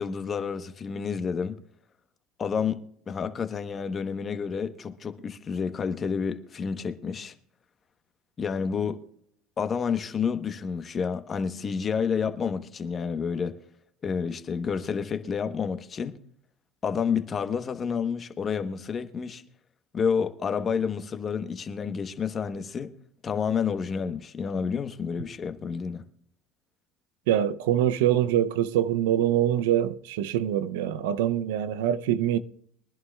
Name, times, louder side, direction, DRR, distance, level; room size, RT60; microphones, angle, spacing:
voice 1, 0.0-1.6 2.4-7.3 8.4-9.0 9.6-13.6 14.0-16.2 16.8-19.4 19.9-22.9 23.2-26.0, left 6 dB, 35° left, 1.0 m, -29 dB
voice 2, 27.3-32.4, right 11 dB, 90° right, 0.5 m, -24 dB
23.0 x 11.0 x 2.3 m
supercardioid pair, 105°, 0 cm